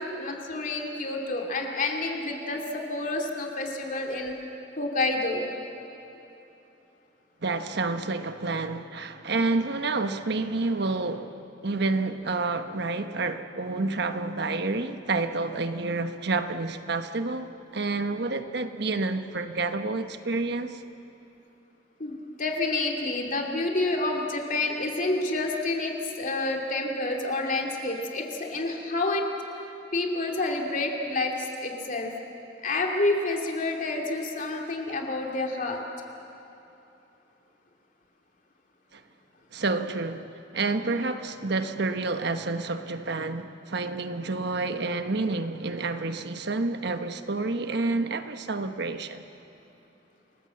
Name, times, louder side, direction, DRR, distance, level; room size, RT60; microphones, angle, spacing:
voice 1, 0.0-4.3 4.8-5.5 22.0-29.2 29.9-31.3 31.6-32.1 32.6-35.8, left 2 dB, 45° left, 1 dB, 2.6 m, -29 dB
voice 2, 7.4-11.4 11.6-20.8 38.9-39.0 39.5-49.2, right 3 dB, 65° right, 8 dB, 1.2 m, -29 dB
28.5 x 19.5 x 7.7 m, 3.0 s
head